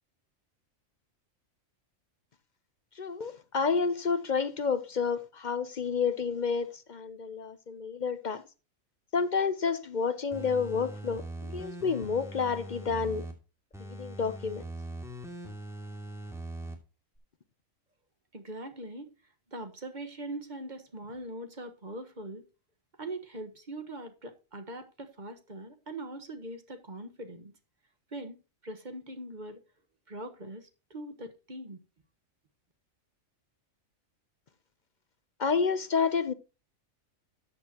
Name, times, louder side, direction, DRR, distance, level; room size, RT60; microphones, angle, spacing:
voice 1, 3.0-8.4 9.1-13.2 13.9-14.6 35.4-36.3, left 5 dB, 45° left, 0.7 m, -30 dB
sound 1, 10.3-13.3 13.7-16.7 17.1-17.2, right 1 dB, ahead, 2.5 m, -41 dB
voice 2, 18.3-19.1 19.5-22.5 23.0-27.5 28.1-29.6 30.1-31.8, right 1 dB, 35° right, 1.4 m, -42 dB
13.5 x 8.4 x 2.9 m
omnidirectional pair, 1.4 m